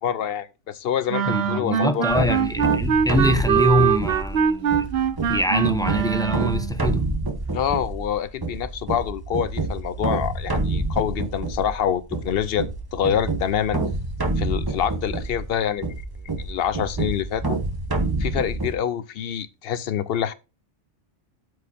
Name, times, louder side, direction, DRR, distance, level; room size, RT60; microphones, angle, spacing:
voice 1, 0.0-2.5 7.5-13.8 14.4-16.0 16.4-17.4 18.2-20.3, left 9 dB, 60° left, 0.8 m, -26 dB
sound 1, 1.1-6.8, right 8 dB, 65° right, 0.8 m, -23 dB
voice 2, 1.3-4.9 5.3-7.0, left 1 dB, 5° left, 0.5 m, -24 dB
sound 2, 2.1-18.7, right 2 dB, 20° right, 1.0 m, -28 dB
13.0 x 4.8 x 2.7 m
omnidirectional pair, 1.2 m